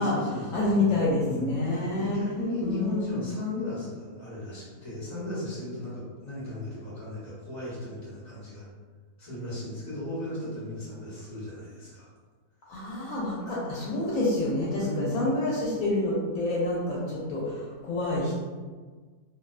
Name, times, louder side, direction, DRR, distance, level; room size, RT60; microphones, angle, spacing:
voice 1, 0.0-8.6 9.2-12.1 14.8-15.2, left 1 dB, 15° left, -9 dB, 0.8 m, -35 dB
voice 2, 0.5-2.2 2.6-3.1 12.7-18.4, left 2 dB, 70° left, -6 dB, 0.9 m, -28 dB
2.6 x 2.2 x 2.3 m, 1.4 s
omnidirectional pair, 1.6 m